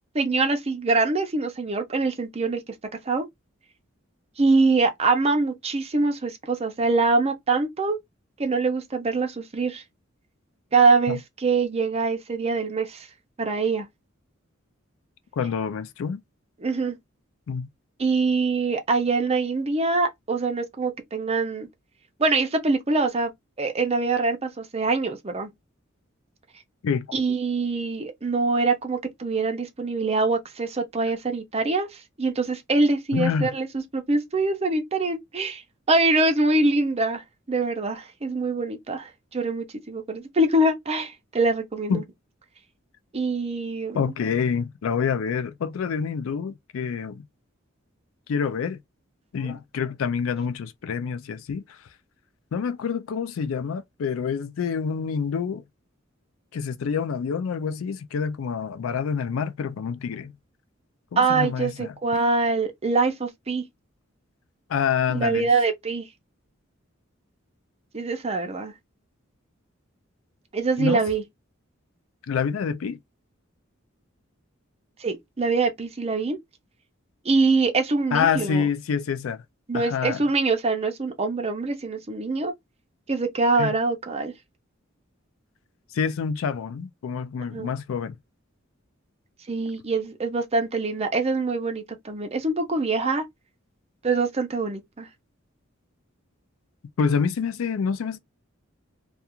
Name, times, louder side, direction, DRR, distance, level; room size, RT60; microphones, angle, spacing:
voice 1, 0.1-2.6 3.1-3.3 4.4-8.0 8.4-9.8 10.7-13.1 13.4-13.9 16.6-17.0 18.0-21.7 22.2-23.3 23.6-25.5 27.1-35.6 35.9-42.0 43.1-44.1 49.4-49.5 61.2-63.7 65.1-66.1 67.9-68.7 70.5-71.2 75.0-76.4 77.2-78.7 79.7-82.5 83.1-84.3 87.5-87.7 89.5-93.2 94.0-95.1, right 3 dB, 30° right, 0.6 m, -24 dB
voice 2, 15.4-16.2 17.5-17.7 26.8-27.1 33.1-33.5 41.9-42.0 43.9-47.2 48.3-48.8 49.3-51.8 52.5-55.6 56.5-60.3 61.1-61.9 64.7-65.5 70.8-71.0 72.3-73.0 78.1-79.4 79.7-80.2 83.6-83.7 85.9-88.2 97.0-98.2, left 6 dB, 90° left, 0.4 m, -27 dB
2.4 x 2.4 x 2.8 m
head